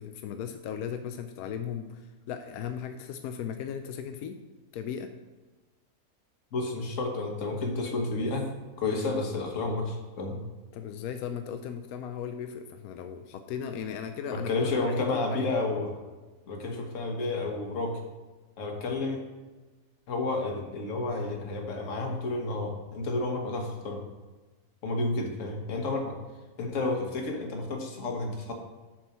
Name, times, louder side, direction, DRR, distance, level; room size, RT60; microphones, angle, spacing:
voice 1, 0.0-4.4 4.7-5.1 10.7-15.9 16.7-16.9, left 8 dB, 80° left, 7 dB, 1.0 m, -37 dB
voice 2, 6.5-8.5 8.8-10.4 14.3-15.9 16.5-18.0 18.6-19.2 20.1-24.0 24.8-26.2 26.6-28.5, left 2 dB, 60° left, 2 dB, 1.5 m, -31 dB
7.3 x 4.6 x 5.6 m, 1.2 s
omnidirectional pair, 1.6 m